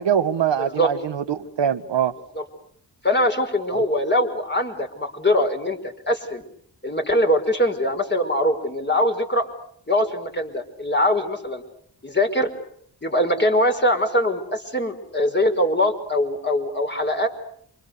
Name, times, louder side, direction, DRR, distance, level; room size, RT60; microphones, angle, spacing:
voice 1, 0.0-2.1, right 8 dB, 75° right, 10 dB, 1.6 m, -23 dB
voice 2, 0.6-0.9 2.4-2.5 3.0-6.4 6.8-9.5 9.9-11.6 12.0-12.5 13.0-17.3, left 1 dB, 25° left, 5 dB, 5.5 m, -22 dB
28.5 x 26.0 x 6.8 m, 0.66 s
cardioid pair, 50°, 43 cm